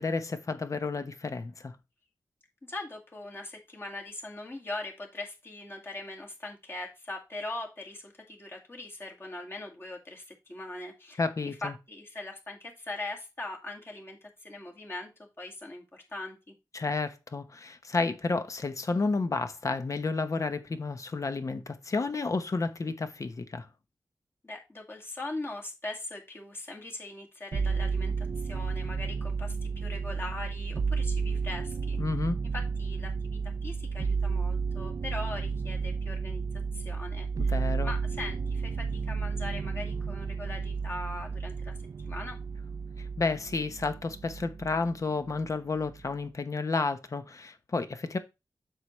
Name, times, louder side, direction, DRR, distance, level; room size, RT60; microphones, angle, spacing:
voice 1, 0.0-1.7 11.2-11.7 16.7-23.7 32.0-32.4 37.4-37.9 43.2-48.2, left 3 dB, 50° left, 1.0 m, -31 dB
voice 2, 2.6-11.2 11.6-15.1 15.4-16.5 24.4-32.0 32.5-36.4 36.7-37.6 37.8-41.8 42.0-42.4, left 2 dB, 30° left, 2.1 m, -41 dB
sound 1, 27.5-44.9 45.3-46.1, right 5 dB, 55° right, 0.5 m, -32 dB
7.8 x 6.4 x 3.1 m
wide cardioid pair, 115°, 7 cm